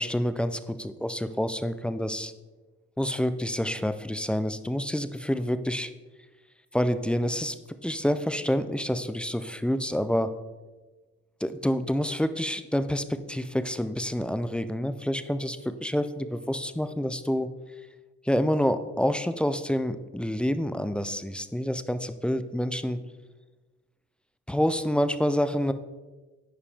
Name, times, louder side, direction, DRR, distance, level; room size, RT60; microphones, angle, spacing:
voice 1, 0.0-2.3 3.0-5.9 6.7-7.6 7.8-10.3 11.4-17.5 18.3-23.0 24.5-25.7, equal, 5° left, 11 dB, 0.3 m, -28 dB
10.0 x 4.8 x 3.4 m, 1.2 s
cardioid pair, 90°, 30 cm